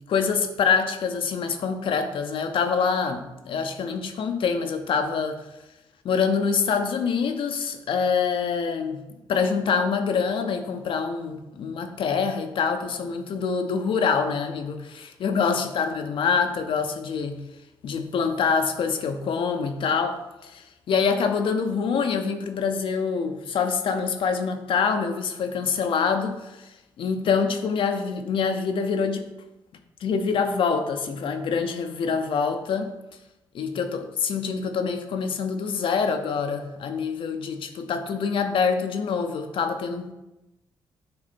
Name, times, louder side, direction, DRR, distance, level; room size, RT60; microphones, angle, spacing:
voice 1, 0.0-5.4 6.0-17.4 17.8-29.3 30.0-32.9 33.5-40.1, left 5 dB, 70° left, 6 dB, 0.7 m, -25 dB
7.6 x 3.2 x 4.3 m, 0.96 s
cardioid pair, 80°, 9 cm